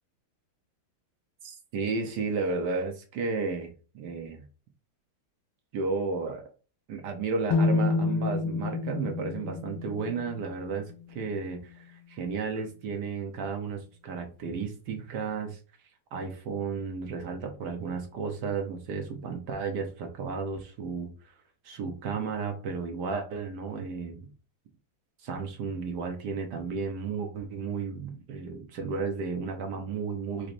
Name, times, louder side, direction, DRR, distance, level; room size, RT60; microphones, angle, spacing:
voice 1, 1.4-3.7 3.9-4.4 5.7-6.4 6.9-15.6 16.1-21.3 21.6-24.3 25.2-30.5, right 4 dB, 60° right, 4 dB, 1.2 m, -33 dB
sound 1, 7.5-11.5, left 3 dB, 80° left, 1.5 m, -29 dB
5.1 x 3.1 x 2.5 m, 0.36 s
omnidirectional pair, 2.3 m